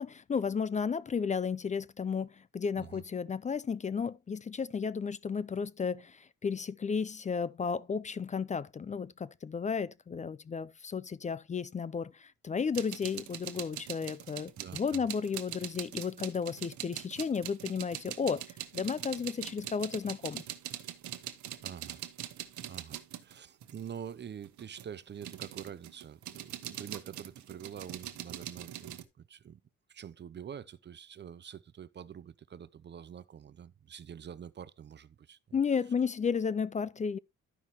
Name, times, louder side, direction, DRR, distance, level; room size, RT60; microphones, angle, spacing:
voice 1, 0.0-18.4 18.7-20.4 35.5-37.2, left 6 dB, 25° left, 0.4 m, -33 dB
sound 1, 12.7-24.0 24.4-29.0, right 12 dB, 70° right, 1.0 m, -42 dB
voice 2, 14.6-15.0 21.6-22.0 22.6-29.6 29.9-35.6, right 8 dB, 35° right, 0.5 m, -46 dB
13.0 x 5.5 x 2.9 m
cardioid pair, 90°, 30 cm